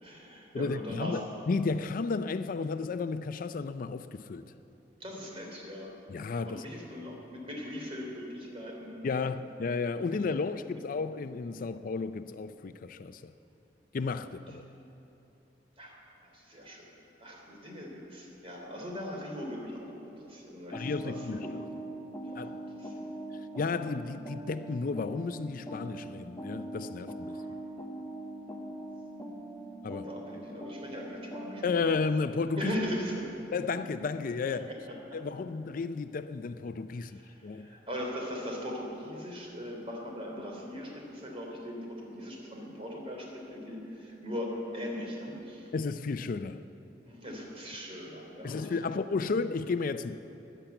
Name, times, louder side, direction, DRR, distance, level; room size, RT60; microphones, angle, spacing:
voice 1, 0.0-1.2 5.0-5.9 6.4-9.0 15.8-16.0 16.3-16.8 17.2-21.6 22.2-23.1 27.3-27.5 29.9-31.6 32.6-33.4 34.7-34.9 35.2-35.3 36.9-45.7 47.1-48.9, equal, 35° right, 3.3 m, -40 dB
voice 2, 0.5-4.4 6.1-6.6 9.0-13.3 13.9-14.7 20.7-21.5 22.4-22.6 23.6-27.4 29.8-30.1 31.6-32.7 33.5-34.7 35.1-37.7 45.7-46.6 48.4-50.2, left 4 dB, 50° left, 0.4 m, -33 dB
sound 1, 20.7-32.0, right 1 dB, 15° left, 1.1 m, -42 dB
14.5 x 10.0 x 8.1 m
head